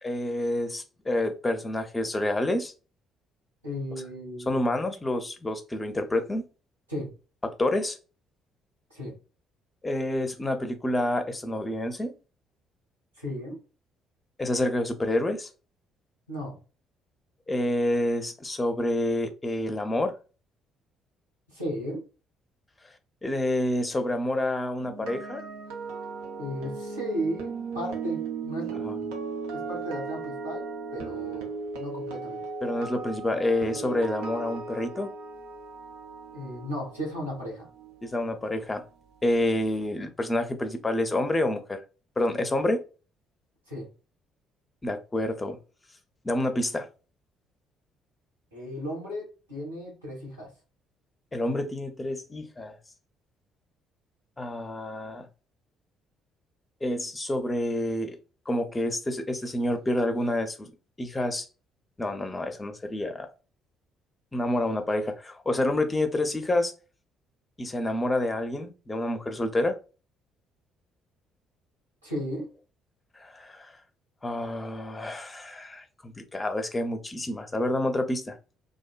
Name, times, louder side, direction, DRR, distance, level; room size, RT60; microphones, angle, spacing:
voice 1, 0.0-2.7 4.5-6.4 7.6-8.0 9.8-12.1 14.4-15.5 17.5-20.2 23.2-25.4 28.8-29.0 32.6-35.1 38.0-38.8 39.2-41.8 42.2-42.8 44.8-45.6 46.2-46.9 51.3-52.8 54.4-55.3 56.8-58.2 58.5-60.7 61.0-61.5 62.0-63.3 64.3-66.7 67.6-69.8 73.2-73.8 74.2-78.4, left 1 dB, 20° left, 0.5 m, -28 dB
voice 2, 3.6-4.8 6.9-7.1 8.9-9.2 13.2-13.6 16.3-16.6 21.5-22.0 26.4-28.9 29.5-32.4 36.3-37.7 43.7-43.9 48.5-50.5 72.0-72.5, equal, 85° right, 1.1 m, -35 dB
sound 1, 24.8-38.9 39.2-39.5, right 4 dB, 70° right, 0.5 m, -37 dB
2.5 x 2.1 x 2.3 m
figure-of-eight pair, 45°, 0 cm